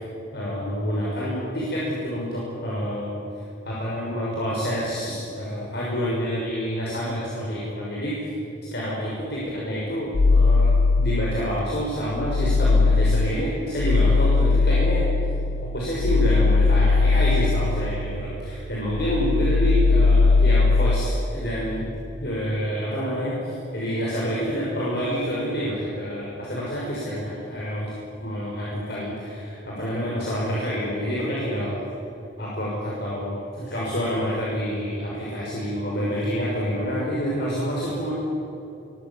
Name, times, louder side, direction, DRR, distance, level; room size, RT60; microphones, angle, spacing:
voice 1, 0.3-3.1 3.6-8.3 8.7-15.0 15.6-21.9 22.2-31.8 32.4-38.1, equal, 60° left, -5 dB, 6.3 m, -28 dB
sound 1, 10.1-11.6 12.0-18.5 18.8-21.1, left 3 dB, 80° left, 0.6 m, -20 dB
25.0 x 23.0 x 7.4 m, 2.8 s
head